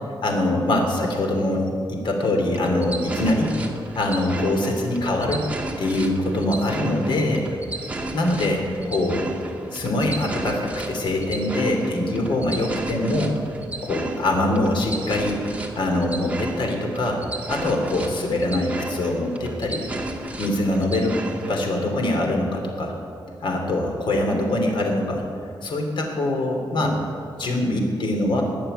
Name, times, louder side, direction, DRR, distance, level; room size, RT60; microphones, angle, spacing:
voice 1, 0.2-3.5 3.9-5.4 5.8-7.5 8.1-9.2 9.7-13.4 13.8-15.4 15.7-17.2 17.5-19.9 20.4-21.2 21.5-22.9 23.4-25.2 25.6-27.0 27.4-28.4, left 1 dB, 70° left, 2 dB, 3.0 m, -23 dB
sound 1, 2.5-21.7, right 2 dB, 15° right, 1.4 m, -34 dB
19.0 x 6.9 x 9.9 m, 2.4 s
wide cardioid pair, 155°, 9 cm